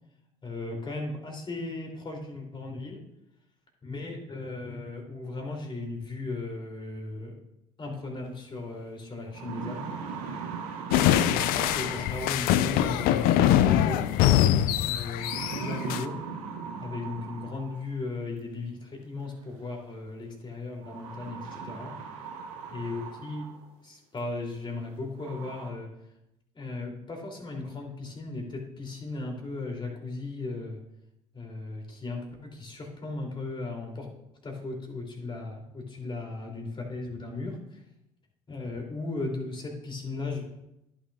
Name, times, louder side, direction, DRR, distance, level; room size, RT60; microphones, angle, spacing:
voice 1, 0.4-3.0 3.8-7.3 7.8-9.8 11.3-14.1 14.8-16.2 16.8-21.9 22.7-23.4 23.8-25.9 26.5-30.8 31.3-34.1 34.4-37.8 38.5-40.4, left 3 dB, 25° left, 0 dB, 2.9 m, -36 dB
sound 1, 8.6-8.7 9.1-12.5 13.9-14.4 15.1-17.9 19.2-19.3 20.8-23.7 24.2-24.3 24.8-24.9 25.2-25.7, right 5 dB, 65° right, 1.3 m, -39 dB
sound 2, 10.9-16.0, left 11 dB, 55° left, 0.5 m, -23 dB
15.0 x 6.2 x 2.4 m, 0.86 s
figure-of-eight pair, 55°, 18 cm